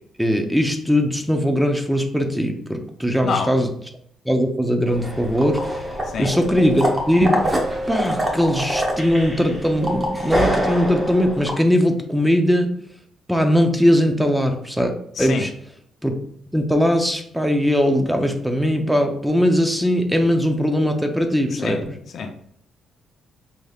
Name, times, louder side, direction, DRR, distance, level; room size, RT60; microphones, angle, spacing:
voice 1, 0.2-3.7 4.3-5.8 6.2-7.4 7.9-12.8 13.3-14.9 15.2-15.5 16.0-16.2 16.5-21.9, equal, 5° right, 5 dB, 0.6 m, -20 dB
voice 2, 3.2-3.5 6.1-6.3 15.2-15.5 21.5-21.8 22.1-22.5, left 5 dB, 60° left, 5 dB, 0.6 m, -27 dB
sound 1, 4.8-11.5, equal, 20° right, 1.0 m, -25 dB
5.4 x 3.2 x 2.4 m, 0.64 s
cardioid pair, 90°, 0 cm